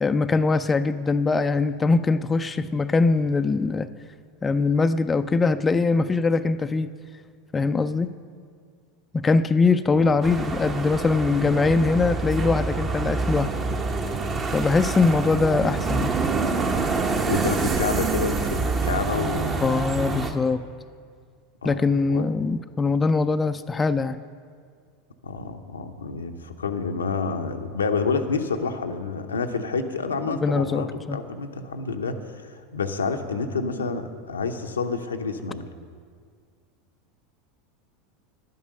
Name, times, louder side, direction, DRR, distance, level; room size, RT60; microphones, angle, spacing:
voice 1, 0.0-3.9 4.4-6.9 7.5-8.1 9.1-13.5 14.5-16.2 19.6-20.7 21.6-24.2 30.3-31.2, left 4 dB, 20° left, 10 dB, 0.4 m, -22 dB
sound 1, 10.2-20.3, right 4 dB, 30° right, 1.1 m, -26 dB
voice 2, 17.3-19.6 21.6-22.2 25.2-35.6, left 4 dB, 85° left, 6 dB, 0.7 m, -29 dB
11.0 x 9.4 x 6.4 m, 2.1 s
hypercardioid pair, 85°, 0 cm